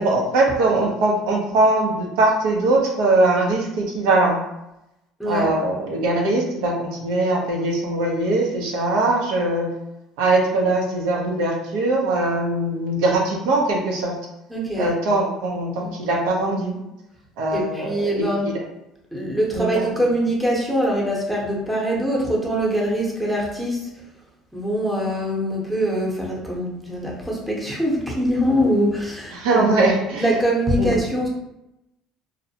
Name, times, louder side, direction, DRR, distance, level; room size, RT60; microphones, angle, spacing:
voice 1, 0.0-4.4 5.2-9.7 10.2-14.2 14.8-16.7 17.4-18.6 19.5-19.8 29.3-30.3 30.8-30.9, right 2 dB, 85° right, -1 dB, 0.6 m, -21 dB
voice 2, 5.2-5.5 14.5-14.9 15.8-15.9 17.5-18.5 19.1-23.9 24.5-29.8 30.2-31.3, equal, ahead, -4 dB, 0.7 m, -23 dB
2.5 x 2.1 x 2.7 m, 0.88 s
supercardioid pair, 110°, 0 cm